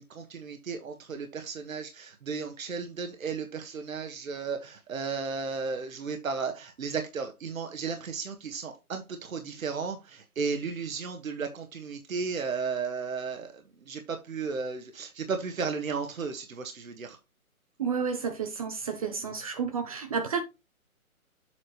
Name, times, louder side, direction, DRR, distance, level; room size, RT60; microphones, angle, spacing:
voice 1, 0.0-17.2, right 5 dB, 65° right, 1.5 m, -34 dB
voice 2, 17.8-20.4, right 6 dB, 25° right, 0.7 m, -31 dB
7.7 x 6.0 x 3.0 m
figure-of-eight pair, 140°, 43 cm